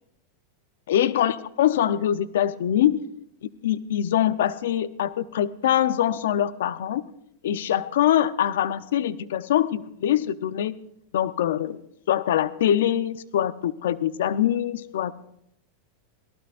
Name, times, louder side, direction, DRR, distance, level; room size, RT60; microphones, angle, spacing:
voice 1, 0.9-3.0 3.4-7.0 7.4-10.7 11.1-11.8 12.1-15.1, left 11 dB, 80° left, 14 dB, 0.8 m, -23 dB
22.5 x 18.0 x 2.6 m, 0.76 s
supercardioid pair, 125°, 0 cm